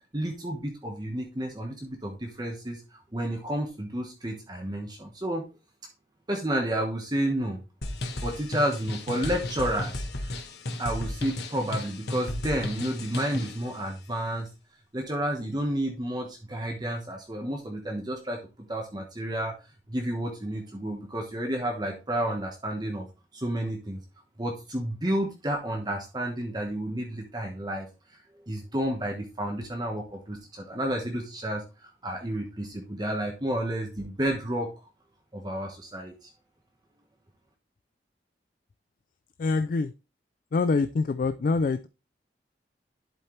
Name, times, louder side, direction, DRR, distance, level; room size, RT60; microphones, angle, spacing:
voice 1, 0.1-2.8 3.1-5.4 6.3-7.6 8.2-10.4 10.8-14.5 14.9-18.4 18.7-19.5 19.9-23.1 23.3-24.0 24.4-27.9 28.5-34.7 35.3-36.3, right 1 dB, 25° right, 1 dB, 1.2 m, -31 dB
sound 1, 7.8-13.6, left 1 dB, 70° left, 1.2 m, -34 dB
voice 2, 39.4-39.9 40.5-41.9, left 4 dB, 50° left, 12 dB, 0.3 m, -25 dB
11.0 x 4.4 x 3.2 m, 0.30 s
head